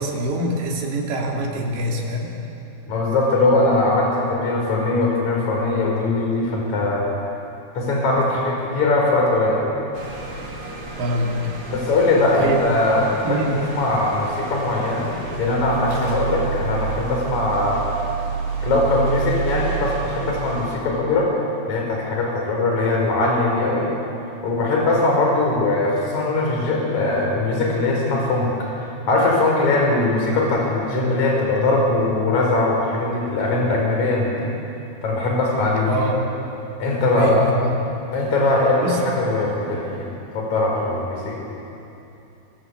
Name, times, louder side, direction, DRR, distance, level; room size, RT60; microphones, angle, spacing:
voice 1, 0.0-2.3 11.0-11.4 12.4-12.7 13.3-13.6 35.9-36.3 37.2-37.7 38.8-39.0, right 1 dB, 70° right, -2 dB, 5.4 m, -24 dB
voice 2, 2.9-7.0 7.7-9.7 11.7-15.1 15.4-17.9 18.6-21.3 21.7-23.9 24.4-28.5 28.8-34.5 35.0-35.9 36.8-37.4 38.1-40.1 40.3-41.4, left 2 dB, 40° left, -1 dB, 5.8 m, -21 dB
sound 1, 9.9-20.8, right 6 dB, 45° right, 4.2 m, -30 dB
25.0 x 22.5 x 8.3 m, 2.9 s
omnidirectional pair, 5.2 m